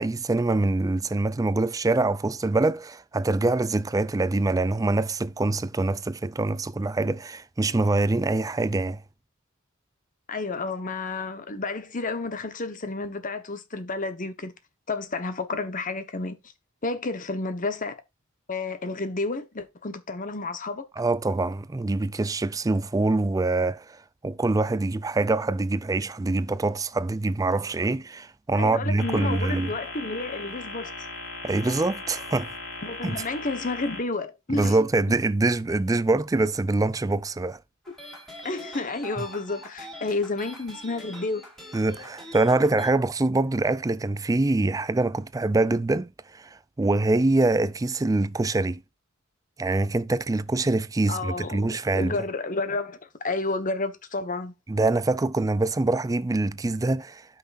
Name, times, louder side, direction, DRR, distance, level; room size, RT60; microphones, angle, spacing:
voice 1, 0.0-9.0 21.0-24.0 24.2-29.7 31.4-32.5 33.0-33.2 34.5-37.6 41.7-46.5 46.8-48.8 49.6-52.2 54.7-57.2, right 2 dB, 15° right, 0.4 m, -24 dB
voice 2, 10.3-14.5 14.9-16.4 16.8-18.0 18.5-20.8 28.5-31.1 32.8-34.8 38.4-41.4 51.1-54.5, left 3 dB, 40° left, 1.1 m, -31 dB
sound 1, 29.0-34.0, left 3 dB, 60° left, 4.4 m, -38 dB
sound 2, 37.8-42.9, equal, ahead, 4.1 m, -44 dB
12.0 x 5.9 x 2.5 m
head